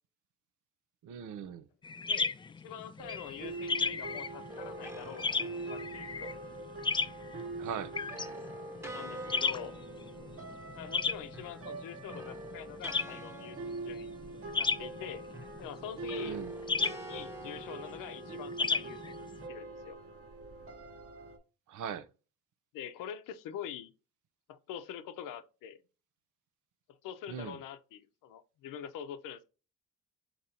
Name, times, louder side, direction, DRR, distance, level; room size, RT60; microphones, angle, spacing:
voice 1, 1.0-1.7 7.6-7.9 16.2-16.5 21.7-22.1 27.3-27.6, right 8 dB, 70° right, 0.7 m, -40 dB
sound 1, 1.8-19.5, left 4 dB, 15° left, 0.3 m, -35 dB
voice 2, 2.6-6.3 8.9-9.7 10.7-14.1 14.6-15.2 15.6-16.4 17.1-20.0 22.7-23.9 24.5-25.8 27.0-29.4, left 9 dB, 85° left, 0.7 m, -45 dB
sound 2, 3.0-21.4, right 3 dB, 45° right, 1.1 m, -44 dB
sound 3, 4.5-6.4 7.3-11.0 11.3-14.9 15.3-18.8, right 1 dB, 10° right, 1.0 m, -48 dB
3.9 x 3.0 x 4.1 m
cardioid pair, 80°, 31 cm